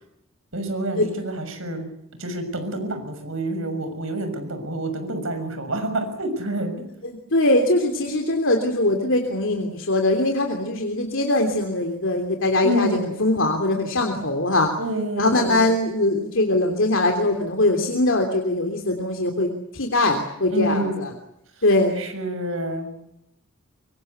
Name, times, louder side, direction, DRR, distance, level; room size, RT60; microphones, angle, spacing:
voice 1, 0.5-1.9 2.2-6.7 12.6-13.1 14.8-15.7 20.5-21.0 22.0-23.1, right 1 dB, 70° right, 8 dB, 6.5 m, -28 dB
voice 2, 7.0-14.7 15.1-21.1 21.6-21.9, left 2 dB, 65° left, 3 dB, 3.2 m, -21 dB
24.5 x 24.5 x 8.3 m, 0.81 s
head